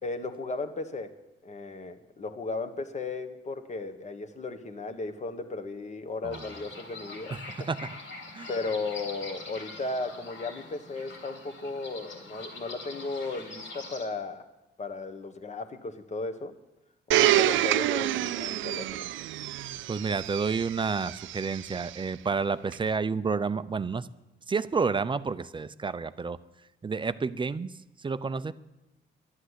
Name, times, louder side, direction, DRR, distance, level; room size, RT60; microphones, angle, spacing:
voice 1, 0.0-1.1 1.4-7.7 8.5-14.5 14.8-16.5 17.1-19.1, left 3 dB, 35° left, 9 dB, 1.4 m, -35 dB
sound 1, 6.3-14.0, left 3 dB, 75° left, 3.4 m, -44 dB
voice 2, 7.3-7.9 8.3-8.5 19.6-24.1 24.5-26.4 26.8-27.7 28.0-28.5, right 5 dB, 25° right, 14 dB, 0.5 m, -30 dB
Domestic sounds home sounds, 17.1-21.9 22.7-22.8, right 14 dB, 75° right, 0.5 m, -28 dB
11.5 x 10.0 x 8.1 m, 0.97 s
cardioid pair, 90°, 20 cm